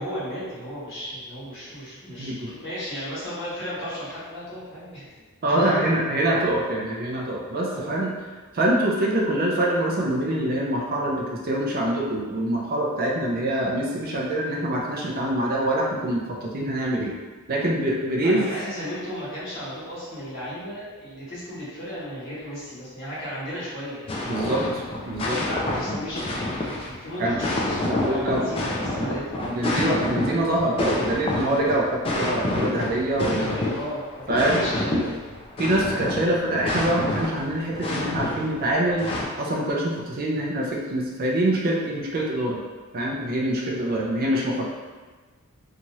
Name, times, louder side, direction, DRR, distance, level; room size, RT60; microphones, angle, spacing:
voice 1, 0.0-5.2 5.5-6.1 7.7-7.9 18.2-24.9 25.3-29.7 33.1-35.3 43.6-43.9 44.2-44.3, equal, 60° left, -10 dB, 1.2 m, -35 dB
voice 2, 2.2-2.5 2.9-3.0 5.4-8.1 8.5-17.1 17.5-18.5 24.3-25.4 27.2-27.4 27.8-28.5 29.0-29.2 29.5-33.5 34.3-34.9 35.6-39.1 39.4-42.6 42.9-44.7, right 1 dB, 40° right, -3 dB, 0.4 m, -25 dB
sound 1, 24.1-39.3, left 1 dB, 25° left, 0.3 m, -28 dB
2.7 x 2.4 x 3.0 m, 1.4 s
head